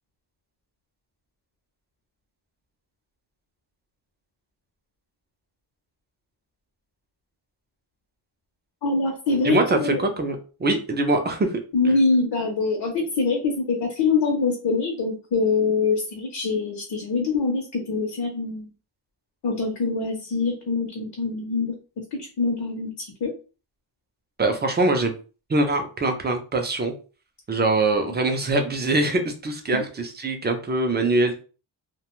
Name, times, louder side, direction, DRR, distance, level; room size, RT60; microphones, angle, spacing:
voice 1, 8.8-10.0 11.7-18.7 19.4-21.7 22.1-23.3 29.7-29.8, left 4 dB, 65° left, 1 dB, 0.6 m, -24 dB
voice 2, 9.4-11.5 24.4-25.1 25.5-26.9 27.5-31.4, right 2 dB, 25° right, 5 dB, 0.4 m, -23 dB
2.3 x 2.2 x 3.0 m, 0.35 s
wide cardioid pair, 170°, 43 cm